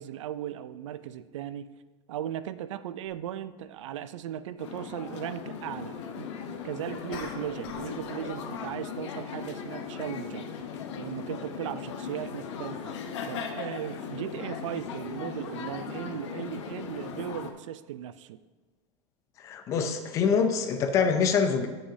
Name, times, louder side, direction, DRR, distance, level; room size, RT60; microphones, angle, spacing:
voice 1, 0.0-1.7 2.1-10.5 11.0-12.9 13.3-18.4, right 11 dB, 75° right, 14 dB, 0.5 m, -37 dB
sound 1, 3.1-3.2 7.1-8.0 8.3-8.6, left 5 dB, 45° left, 1.4 m, -42 dB
sound 2, 4.6-17.5, left 6 dB, 65° left, 1.0 m, -38 dB
voice 2, 19.4-21.7, left 6 dB, 20° left, 8 dB, 0.5 m, -25 dB
16.0 x 6.6 x 2.7 m, 1.3 s
supercardioid pair, 180°, 16 cm